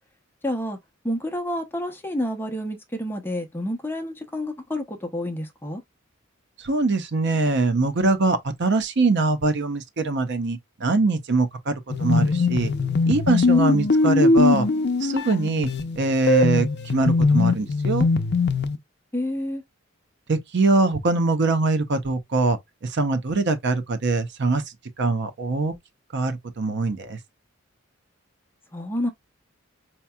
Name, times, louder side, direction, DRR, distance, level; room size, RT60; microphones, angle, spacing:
voice 1, 0.4-0.8 1.0-5.8 19.1-19.6 28.7-29.1, left 1 dB, 10° left, 0.6 m, -29 dB
voice 2, 6.6-12.7 13.1-14.7 15.0-15.7 16.0-18.1 20.3-22.6 22.8-24.6 25.0-25.7 26.1-27.2, right 3 dB, 60° right, 0.7 m, -23 dB
sound 1, 11.9-18.8, left 3 dB, 55° left, 0.5 m, -21 dB
4.5 x 2.8 x 2.2 m
head